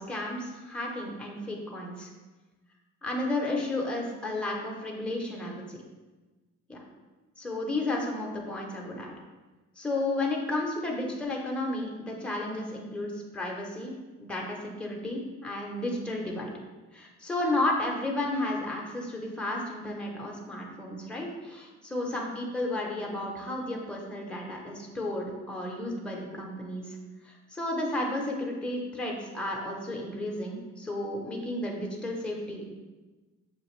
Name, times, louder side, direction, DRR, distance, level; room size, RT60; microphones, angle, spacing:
voice 1, 0.0-2.1 3.0-5.8 6.7-6.8 7.4-9.1 9.8-13.9 14.2-16.5 16.9-27.0 27.2-32.7, left 1 dB, 5° left, -1 dB, 0.7 m, -33 dB
5.7 x 2.5 x 3.1 m, 1.2 s
cardioid pair, 90°, 30 cm